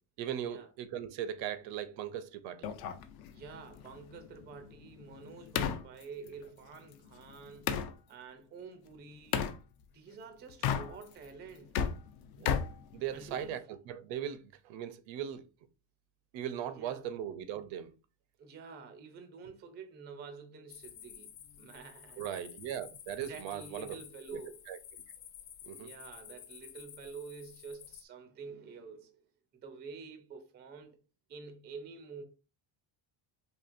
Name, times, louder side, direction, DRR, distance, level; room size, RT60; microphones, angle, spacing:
voice 1, 0.2-2.7 12.4-12.5 12.9-15.5 16.3-17.9 22.2-24.0 24.3-24.4 24.7-24.8 25.6-25.9, right 10 dB, 70° right, 0.6 m, -39 dB
sound 1, 2.6-7.9 9.3-9.6 10.5-11.3 11.6-13.5, left 8 dB, 50° left, 0.5 m, -35 dB
voice 2, 3.3-7.8 8.1-9.5 9.9-11.8 13.1-13.6 16.7-17.1 18.4-21.3 21.6-22.2 23.3-24.6 25.8-29.1 29.6-31.0 31.3-32.2, right 5 dB, 25° right, 0.4 m, -48 dB
sound 2, 20.7-28.0, left 10 dB, 75° left, 0.8 m, -52 dB
4.4 x 2.8 x 2.5 m
cardioid pair, 170°, 49 cm